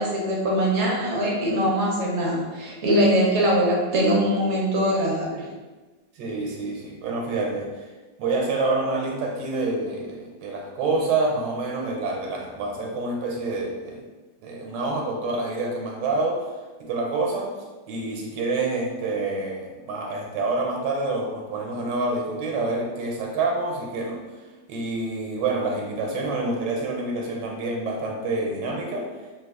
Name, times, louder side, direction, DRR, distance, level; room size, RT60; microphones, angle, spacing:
voice 1, 0.0-5.5, equal, 65° right, -3 dB, 0.7 m, -22 dB
voice 2, 6.2-7.9 8.2-14.1 14.4-16.5 16.8-17.5 17.9-24.2 24.7-29.1, right 3 dB, 85° right, 0 dB, 1.4 m, -27 dB
3.1 x 2.3 x 3.5 m, 1.2 s
omnidirectional pair, 1.9 m